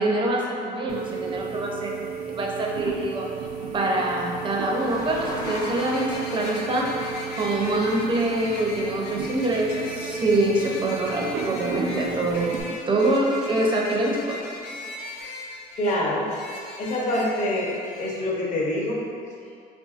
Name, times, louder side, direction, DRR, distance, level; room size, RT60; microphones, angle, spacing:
voice 1, 0.0-2.0 2.3-3.3 3.7-6.9 7.4-12.6 12.9-14.4, right 1 dB, 30° right, -2 dB, 0.5 m, -25 dB
sound 1, 0.9-12.6, right 6 dB, 80° right, 0.4 m, -34 dB
sound 2, 1.4-12.8, left 1 dB, 20° left, 0.4 m, -43 dB
sound 3, 5.4-18.2, left 2 dB, 90° left, 0.4 m, -38 dB
voice 2, 15.8-16.3 16.8-17.7 18.0-19.0, left 1 dB, 50° left, -4 dB, 0.8 m, -25 dB
3.5 x 2.6 x 2.4 m, 2.4 s
cardioid pair, 110°, 17 cm